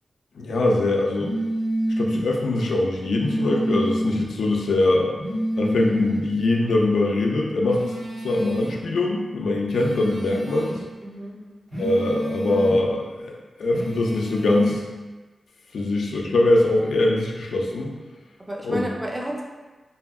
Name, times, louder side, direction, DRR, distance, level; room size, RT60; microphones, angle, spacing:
voice 1, 0.4-1.3 2.0-5.1 5.6-7.8 8.2-10.7 11.8-14.8 15.7-17.9 18.6-18.9, left 2 dB, 90° left, 0 dB, 0.3 m, -22 dB
sound 1, 1.2-2.2 3.2-4.2 5.2-6.2 7.7-8.8 9.7-10.8 11.7-12.8 13.7-14.7, right 1 dB, 60° right, 1.1 m, -28 dB
voice 2, 11.0-11.4 18.4-19.4, right 1 dB, 20° right, -2 dB, 0.5 m, -31 dB
2.7 x 2.6 x 2.3 m, 1.3 s
cardioid pair, 55°, 0 cm